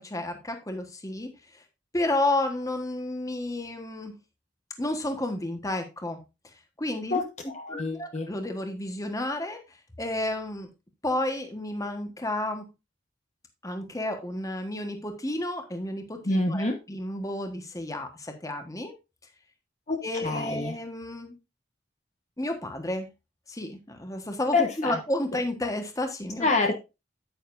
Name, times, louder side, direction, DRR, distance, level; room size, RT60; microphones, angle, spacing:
voice 1, 0.0-1.3 1.9-4.2 4.8-6.2 6.8-7.2 7.7-9.6 10.0-10.7 11.0-12.6 13.6-18.9 20.0-21.3 22.4-23.1 23.5-26.5, left 1 dB, 20° left, 6 dB, 1.4 m, -31 dB
voice 2, 7.1-8.3 16.2-16.8 19.9-20.0 20.2-20.8 24.5-25.0 26.4-26.7, left 3 dB, 40° left, 3 dB, 1.2 m, -26 dB
9.3 x 9.1 x 2.6 m, 0.26 s
head